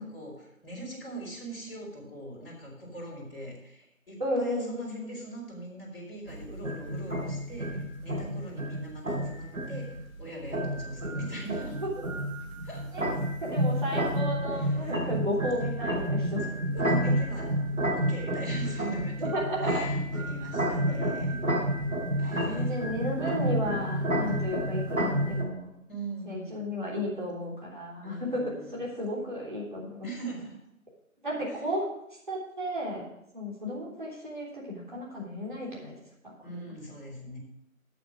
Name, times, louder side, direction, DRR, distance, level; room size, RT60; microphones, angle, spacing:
voice 1, 0.0-11.8 12.6-13.1 14.4-15.0 16.5-17.5 17.9-19.2 19.6-21.6 22.2-22.7 25.9-26.7 28.0-28.8 30.0-30.6 31.5-31.6 36.4-37.4, right 2 dB, 40° left, -4 dB, 4.9 m, -41 dB
voice 2, 4.2-5.1 12.9-13.1 13.4-16.5 19.3-19.9 20.9-21.1 22.2-25.7 26.3-30.1 31.2-31.9 32.3-33.0 33.3-35.9 36.2-36.7, equal, 35° right, -5 dB, 3.5 m, -33 dB
sound 1, 6.3-25.4, equal, 70° right, 4.1 m, -30 dB
8.7 x 8.3 x 6.5 m, 0.81 s
figure-of-eight pair, 170°, 42 cm